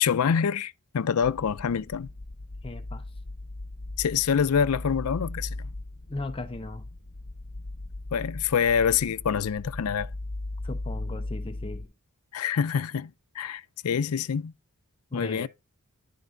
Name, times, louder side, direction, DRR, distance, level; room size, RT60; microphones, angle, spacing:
voice 1, 0.0-2.1 4.0-5.7 8.1-10.1 12.3-14.5 15.1-15.5, left 7 dB, 80° left, 0.5 m, -26 dB
sound 1, 1.2-11.9, left 2 dB, 55° left, 1.2 m, -38 dB
voice 2, 2.6-3.0 6.1-6.9 10.6-11.9 15.1-15.5, left 2 dB, 25° left, 0.6 m, -37 dB
10.5 x 3.9 x 4.5 m
head